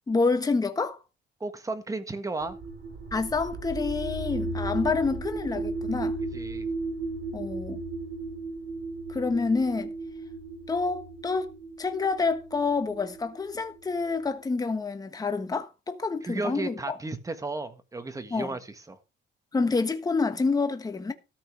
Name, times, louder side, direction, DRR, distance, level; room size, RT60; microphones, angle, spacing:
voice 1, 0.1-1.0 3.1-6.2 7.3-7.8 9.1-9.9 10.7-11.5 11.8-17.0 18.3-18.5 19.5-21.1, left 4 dB, 20° left, 1.3 m, -28 dB
voice 2, 1.4-2.6 6.3-6.7 16.2-19.0, right 3 dB, 15° right, 1.5 m, -34 dB
sound 1, 2.4-14.2, right 3 dB, 55° right, 7.6 m, -35 dB
13.5 x 5.4 x 6.7 m
cardioid pair, 140°, 20 cm